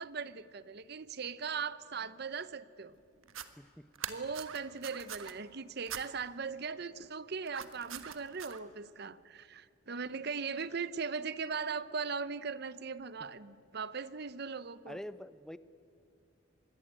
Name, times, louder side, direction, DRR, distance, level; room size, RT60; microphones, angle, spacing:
voice 1, 0.0-2.9 4.1-15.0, right 5 dB, 55° right, 16 dB, 0.7 m, -39 dB
sound 1, 3.2-3.5 3.9-5.3 5.9-6.0 7.5-8.6, right 9 dB, 85° right, 1.5 m, -43 dB
voice 2, 14.9-15.6, equal, 5° left, 14 dB, 0.6 m, -45 dB
26.0 x 21.5 x 8.9 m, 2.5 s
head